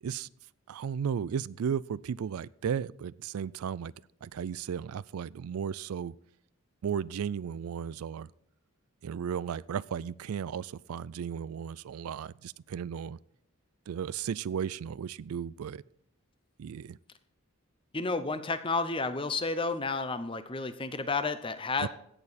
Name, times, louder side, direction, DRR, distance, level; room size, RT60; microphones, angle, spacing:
voice 1, 0.7-3.9 4.2-6.1 6.8-8.3 9.0-13.2 13.9-15.8 16.6-17.0 21.8-21.9, right 7 dB, 85° right, 21 dB, 0.4 m, -35 dB
voice 2, 17.9-21.9, left 3 dB, 25° left, 12 dB, 0.7 m, -31 dB
16.5 x 6.9 x 4.2 m, 0.73 s
head